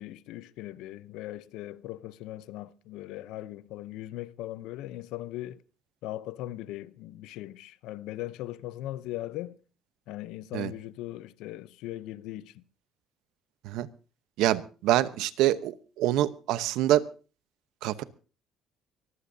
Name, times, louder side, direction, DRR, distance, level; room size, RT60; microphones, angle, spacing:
voice 1, 0.0-5.6 6.0-9.6 10.1-12.6, left 15 dB, 85° left, 0.7 m, -39 dB
voice 2, 14.4-17.0 17.8-18.0, right 13 dB, 80° right, 0.9 m, -26 dB
23.5 x 15.0 x 2.7 m
cardioid pair, 130°, 0 cm